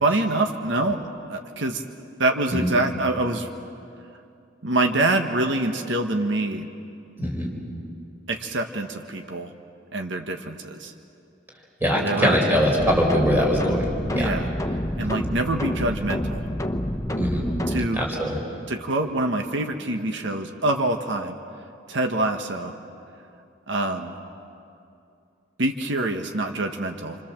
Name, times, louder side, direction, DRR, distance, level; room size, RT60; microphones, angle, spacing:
voice 1, 0.0-1.8 2.2-3.5 4.6-6.7 8.3-9.5 9.9-10.9 12.0-12.4 14.1-14.5 15.0-16.5 17.7-18.0 18.7-21.4 21.9-22.7 23.7-24.1 25.6-27.2, right 2 dB, 70° right, 5 dB, 1.4 m, -25 dB
voice 2, 7.2-7.5 11.8-14.3 17.2-17.4 17.9-18.4, equal, 10° right, -2 dB, 5.0 m, -22 dB
sound 1, 12.8-17.9, left 1 dB, 15° left, 1.2 m, -28 dB
28.5 x 25.0 x 7.4 m, 2.6 s
head